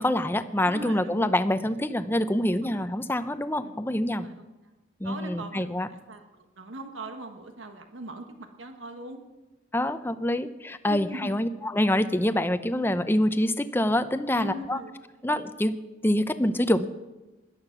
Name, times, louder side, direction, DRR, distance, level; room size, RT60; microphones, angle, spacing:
voice 1, 0.0-4.3 5.0-5.9 9.7-14.8 15.2-15.7 16.0-16.9, left 1 dB, 10° left, 11 dB, 0.6 m, -26 dB
voice 2, 0.6-1.3 2.6-2.7 3.6-3.8 4.2-4.3 5.0-5.7 6.1-6.2 6.6-9.2 10.8-11.4 14.3-14.9, right 1 dB, 85° right, 6 dB, 1.4 m, -39 dB
17.5 x 11.5 x 6.0 m, 1.1 s
head